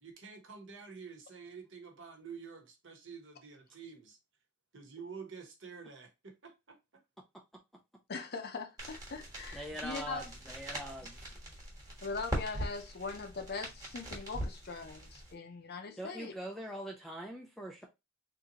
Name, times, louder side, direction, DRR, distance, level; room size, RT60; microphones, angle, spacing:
voice 1, 0.0-4.2 4.7-6.8, right 5 dB, 60° right, 1.0 m, -49 dB
voice 2, 8.1-10.3 12.0-16.3, left 4 dB, 50° left, 0.6 m, -41 dB
sound 1, 8.8-15.3, equal, 15° right, 1.2 m, -42 dB
voice 3, 9.5-11.2 16.0-17.9, right 1 dB, ahead, 0.3 m, -43 dB
3.6 x 2.7 x 2.8 m
head